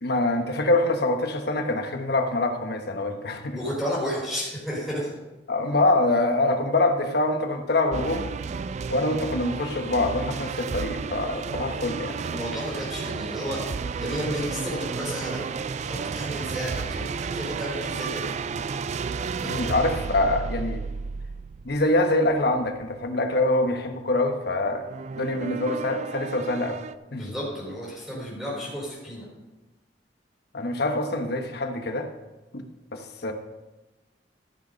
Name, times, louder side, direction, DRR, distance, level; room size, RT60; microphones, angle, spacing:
voice 1, 0.0-3.6 5.5-8.3 8.9-12.3 19.4-20.8 21.6-24.8 25.1-26.8 27.1-27.2 30.5-32.1 32.5-32.6 32.9-33.3, left 2 dB, 65° left, 5 dB, 1.2 m, -25 dB
voice 2, 3.5-5.1 12.2-13.6 14.0-15.4 15.8-18.3 27.1-29.3, equal, ahead, -7 dB, 4.0 m, -32 dB
sound 1, 7.9-22.9 24.7-27.0, right 5 dB, 40° right, 0.3 m, -32 dB
14.0 x 6.6 x 5.2 m, 1.1 s
head